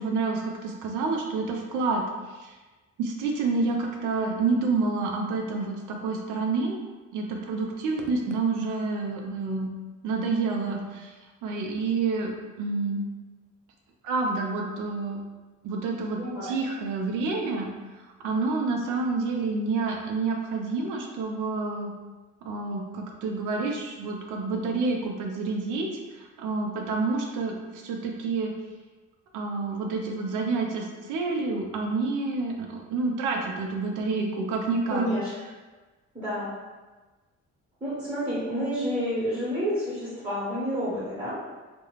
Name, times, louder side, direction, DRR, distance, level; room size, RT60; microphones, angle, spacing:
voice 1, 0.0-2.5 3.0-6.8 7.1-9.7 10.0-11.2 11.4-13.0 14.0-15.2 15.6-17.7 18.2-21.9 22.4-28.5 29.3-35.1, right 3 dB, 90° right, 1 dB, 0.5 m, -28 dB
voice 2, 16.2-16.5 34.9-35.3 36.1-36.5 37.8-41.5, equal, 15° right, -11 dB, 1.2 m, -29 dB
2.4 x 2.2 x 3.0 m, 1.2 s
cardioid pair, 90°, 30 cm